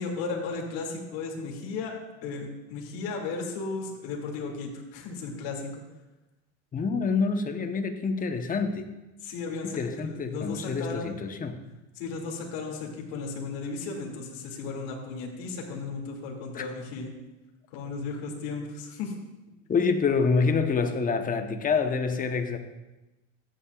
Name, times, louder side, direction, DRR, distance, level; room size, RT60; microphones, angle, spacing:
voice 1, 0.0-1.9 2.2-5.7 9.2-11.1 12.0-17.1 17.7-19.1, left 4 dB, 70° left, 0 dB, 2.3 m, -35 dB
voice 2, 6.7-8.9 9.6-11.6 16.5-16.6 19.7-22.6, left 5 dB, 20° left, 7 dB, 0.9 m, -27 dB
14.5 x 8.9 x 2.3 m, 1.0 s
supercardioid pair, 110°, 37 cm